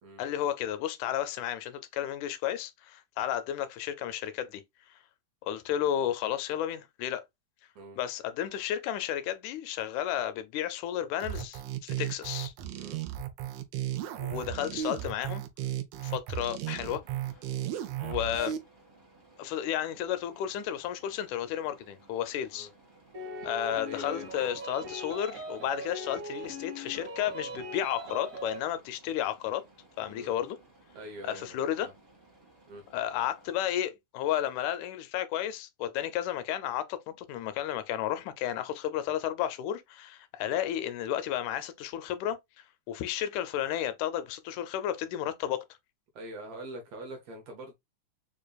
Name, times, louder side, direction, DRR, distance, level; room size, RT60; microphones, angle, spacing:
voice 1, 0.2-4.6 5.4-7.2 8.0-12.5 14.2-15.4 16.0-17.0 18.0-18.6 19.4-22.7 23.4-29.6 30.0-30.6 31.2-31.9 32.9-42.4 42.9-45.6, left 11 dB, 80° left, 1.9 m, -32 dB
sound 1, 11.2-18.6, right 11 dB, 85° right, 1.5 m, -35 dB
sound 2, 17.0-33.5, right 2 dB, 35° right, 0.4 m, -60 dB
sound 3, 23.1-28.6, equal, 50° right, 0.9 m, -40 dB
voice 2, 23.8-24.5 30.1-30.3 30.9-31.9 32.7-32.8 46.1-47.7, right 1 dB, 70° right, 1.7 m, -43 dB
4.9 x 2.5 x 2.3 m
omnidirectional pair, 3.5 m